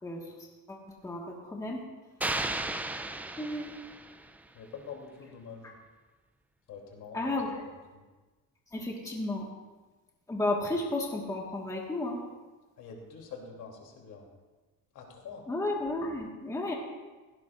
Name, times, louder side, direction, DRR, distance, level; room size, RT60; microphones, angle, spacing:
voice 1, 0.0-1.8 3.4-3.7 7.1-7.5 8.7-9.5 10.3-12.2 15.5-16.8, left 2 dB, 10° left, -1 dB, 1.6 m, -33 dB
sound 1, 2.2-4.4, right 2 dB, 5° right, 0.3 m, -34 dB
voice 2, 4.5-5.7 6.7-8.0 12.8-14.3 14.9-15.4, left 5 dB, 70° left, 1 dB, 3.0 m, -46 dB
16.5 x 16.5 x 2.5 m, 1.2 s
cardioid pair, 155°, 32 cm